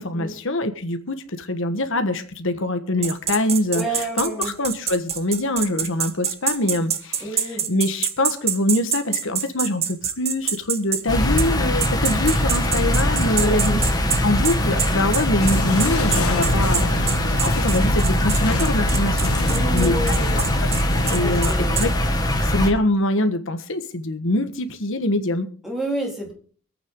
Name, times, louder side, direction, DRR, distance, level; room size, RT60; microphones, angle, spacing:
voice 1, 0.0-7.2 7.7-13.8 14.2-20.1 20.8-21.5 21.8-21.9 22.2-25.5, left 1 dB, 60° left, 9 dB, 1.5 m, -24 dB
sound 1, 3.0-11.0 11.4-11.5 11.8-21.9, right 8 dB, 30° right, 1.1 m, -25 dB
voice 2, 3.7-4.5 7.2-7.7 13.4-13.8 19.4-20.4 21.2-21.8 22.4-22.5 25.6-26.3, right 2 dB, ahead, -1 dB, 4.0 m, -29 dB
sound 2, 11.1-22.7, equal, 20° left, 2.0 m, -22 dB
sound 3, 15.4-21.1, left 2 dB, 85° left, 1.9 m, -27 dB
24.0 x 8.9 x 3.8 m, 0.42 s
head